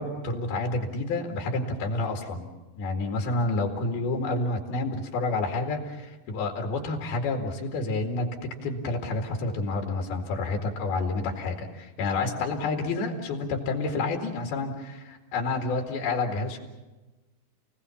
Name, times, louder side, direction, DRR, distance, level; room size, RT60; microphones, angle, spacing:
voice 1, 0.0-2.5 2.8-16.6, left 3 dB, 90° left, 3 dB, 4.1 m, -29 dB
29.5 x 18.5 x 7.1 m, 1.1 s
omnidirectional pair, 4.2 m